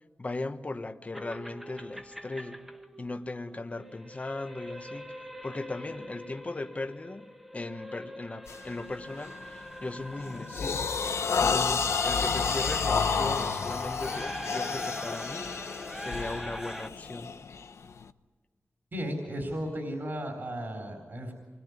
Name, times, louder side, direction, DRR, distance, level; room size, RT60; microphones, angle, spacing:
voice 1, 0.2-2.6 3.0-17.4, left 2 dB, 30° left, 7 dB, 1.2 m, -38 dB
sound 1, 1.1-16.9, equal, 5° right, 1.5 m, -42 dB
sound 2, 8.5-8.7 9.2-9.5 9.9-18.0, left 5 dB, 85° left, 0.9 m, -30 dB
voice 2, 18.9-21.3, equal, 50° right, 2 dB, 3.9 m, -35 dB
27.0 x 21.0 x 9.6 m, 1.4 s
wide cardioid pair, 115°, 5 cm